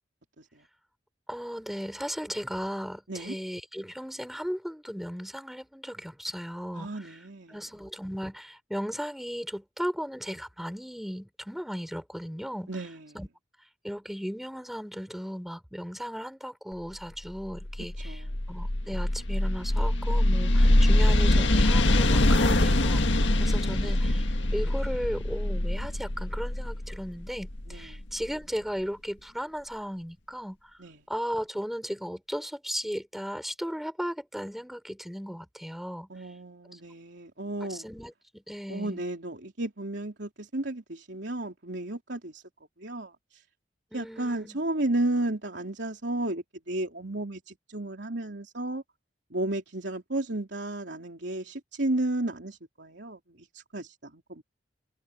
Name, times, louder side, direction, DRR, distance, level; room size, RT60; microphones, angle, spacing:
voice 1, 1.3-7.2 7.5-12.7 13.1-13.3 13.8-23.1 23.4-30.6 31.1-36.1 36.7-36.8 37.7-39.0 43.9-44.6, equal, ahead, 5.7 m, -36 dB
voice 2, 6.7-7.6 12.7-13.0 18.0-18.3 23.2-23.5 27.7-27.9 30.8-31.0 36.1-37.9 38.7-42.4 42.8-43.4 43.9-48.8 49.3-54.4, right 1 dB, 70° right, 3.6 m, -33 dB
sound 1, 17.5-28.2, left 1 dB, 90° left, 1.7 m, -24 dB
head